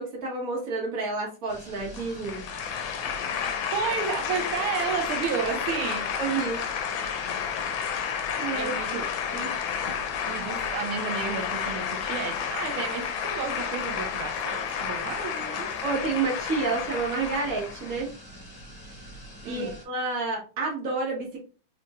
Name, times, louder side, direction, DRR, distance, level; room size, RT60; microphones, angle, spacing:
voice 1, 0.0-2.4 6.2-6.6 8.4-8.7 9.3-9.5 15.8-18.1 19.5-21.4, right 4 dB, 45° right, 1.9 m, -29 dB
sound 1, 1.5-19.8, equal, 25° left, 1.6 m, -45 dB
sound 2, 1.9-18.0, left 7 dB, 80° left, 1.4 m, -31 dB
voice 2, 3.7-6.3 8.5-9.1 10.3-15.7 19.4-19.8, right 7 dB, 90° right, 1.6 m, -32 dB
4.2 x 3.6 x 2.4 m
omnidirectional pair, 2.2 m